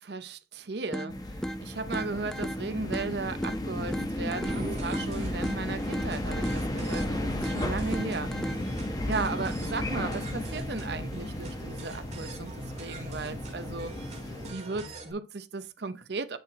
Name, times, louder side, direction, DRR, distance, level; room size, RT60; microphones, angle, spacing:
voice 1, 0.0-8.3 9.1-12.5 12.8-13.9 14.5-16.4, right 3 dB, 60° right, 0.7 m, -36 dB
sound 1, 0.9-8.9, equal, ahead, 0.4 m, -37 dB
sound 2, 1.1-14.5, left 1 dB, 20° left, 0.9 m, -34 dB
sound 3, 4.4-15.1, right 1 dB, 35° right, 1.8 m, -43 dB
9.4 x 4.3 x 4.1 m
head